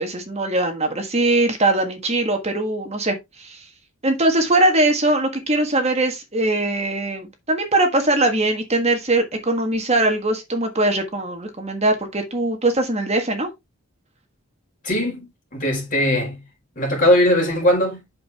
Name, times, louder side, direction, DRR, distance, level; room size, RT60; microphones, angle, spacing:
voice 1, 0.0-3.6 4.0-13.5, right 2 dB, 30° right, 1.6 m, -21 dB
voice 2, 14.8-16.4 16.8-18.2, left 1 dB, 35° left, 4.6 m, -20 dB
7.7 x 6.4 x 3.5 m
head